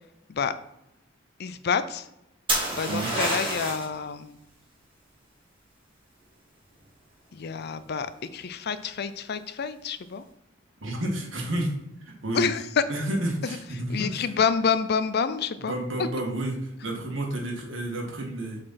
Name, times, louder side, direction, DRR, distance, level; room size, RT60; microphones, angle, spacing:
voice 1, 1.4-2.0 2.7-4.4 7.3-8.1 8.3-10.2 12.3-12.6 13.9-15.7 16.0-16.1, left 6 dB, 55° left, 13 dB, 0.5 m, -28 dB
sound 1, 2.5-3.9 7.6-8.1, right 1 dB, 25° right, 2.3 m, -27 dB
voice 2, 10.8-11.7 12.0-12.5 12.9-14.3 15.6-18.6, right 1 dB, 75° right, 0 dB, 1.8 m, -30 dB
7.6 x 4.2 x 4.2 m, 0.84 s
head